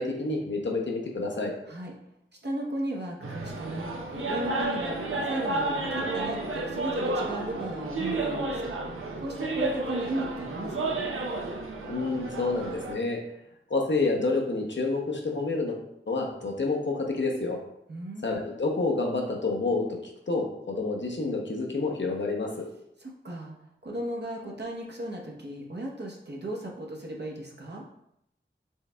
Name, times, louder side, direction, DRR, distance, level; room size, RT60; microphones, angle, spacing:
voice 1, 0.0-1.5 11.9-13.2 13.7-15.8 16.1-17.6 18.2-20.0 20.3-22.5, left 3 dB, 65° left, 0 dB, 0.7 m, -28 dB
voice 2, 2.4-11.1 17.9-18.4 23.0-23.5 23.8-27.8, right 1 dB, 55° right, -2 dB, 0.8 m, -36 dB
sound 1, 3.2-12.9, right 2 dB, 90° right, 0.5 m, -31 dB
4.5 x 3.3 x 2.2 m, 0.77 s
wide cardioid pair, 45°, 21 cm